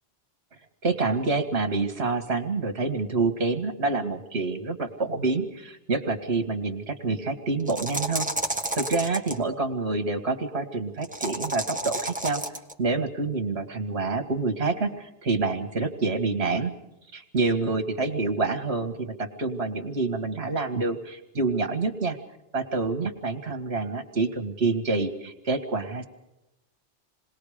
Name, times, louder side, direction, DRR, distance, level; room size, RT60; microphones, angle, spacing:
voice 1, 0.8-8.3 8.7-12.4 12.8-16.7 17.1-22.2 22.5-26.1, right 3 dB, 65° right, 7 dB, 2.0 m, -27 dB
sound 1, 7.6-9.4 11.0-12.7, right 1 dB, 5° right, 1.5 m, -31 dB
27.5 x 20.5 x 5.0 m, 0.91 s
omnidirectional pair, 1.2 m